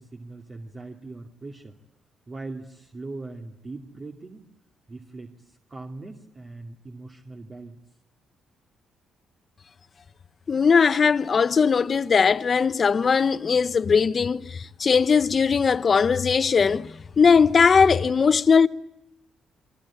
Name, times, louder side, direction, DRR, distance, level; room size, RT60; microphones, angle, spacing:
voice 1, 0.0-1.8 2.3-4.5 4.9-7.8, right 3 dB, 35° right, 2.6 m, -40 dB
voice 2, 10.5-18.7, left 5 dB, 40° left, 1.0 m, -19 dB
29.5 x 22.5 x 8.6 m
cardioid pair, 90°, 0 cm